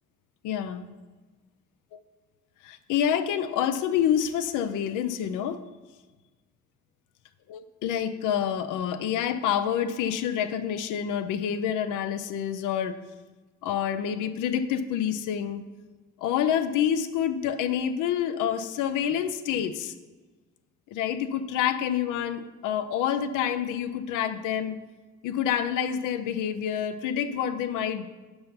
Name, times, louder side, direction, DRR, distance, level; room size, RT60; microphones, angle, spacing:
voice 1, 0.4-0.9 1.9-2.0 2.6-5.6 7.5-13.0 13.6-15.6 16.2-19.9 20.9-24.8 25.2-28.1, left 9 dB, 90° left, 12 dB, 0.5 m, -27 dB
5.7 x 5.5 x 5.6 m, 1.3 s
cardioid pair, 90°, 30 cm